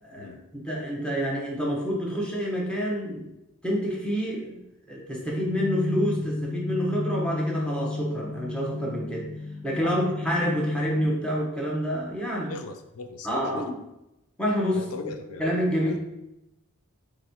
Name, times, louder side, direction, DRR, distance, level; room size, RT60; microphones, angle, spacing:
voice 1, 0.0-3.3 3.6-4.6 4.9-9.3 9.6-12.5 13.2-13.7 14.4-14.9 15.4-16.0, equal, 5° left, -4 dB, 1.0 m, -28 dB
sound 1, 5.4-11.0, left 2 dB, 30° left, 1.2 m, -32 dB
voice 2, 12.4-13.7 14.7-15.5 15.7-16.0, left 4 dB, 85° left, 7 dB, 0.4 m, -39 dB
3.6 x 3.1 x 4.3 m, 0.91 s
head